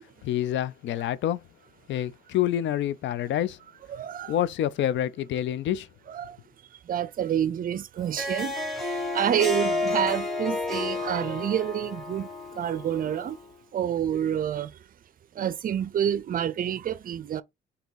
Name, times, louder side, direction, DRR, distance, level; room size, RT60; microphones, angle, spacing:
voice 1, 0.2-1.4 1.9-3.6 4.3-5.9, left 11 dB, 70° left, 0.4 m, -27 dB
voice 2, 3.9-4.4 6.1-6.4 6.9-8.6 9.1-12.3 12.6-13.4 13.7-14.7 15.4-17.4, right 9 dB, 45° right, 0.5 m, -28 dB
Harp, 8.0-13.4, left 2 dB, ahead, 2.0 m, -31 dB
3.5 x 2.8 x 3.9 m
cardioid pair, 90°, 20 cm